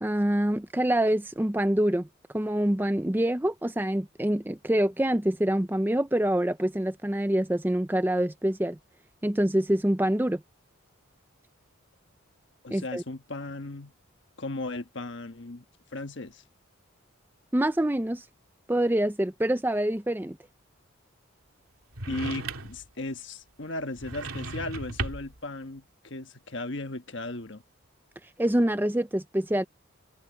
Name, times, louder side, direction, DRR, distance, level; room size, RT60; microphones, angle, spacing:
voice 1, 0.0-2.1 2.3-8.8 9.2-10.4 12.7-13.0 17.5-18.2 18.7-20.4 28.4-29.6, right 1 dB, 10° right, 0.5 m, -25 dB
voice 2, 12.6-13.9 14.4-15.6 15.9-16.4 22.1-27.6, left 2 dB, 55° left, 1.4 m, -36 dB
sound 1, 21.9-22.9 24.0-25.4, right 3 dB, 80° right, 2.9 m, -35 dB
open air
head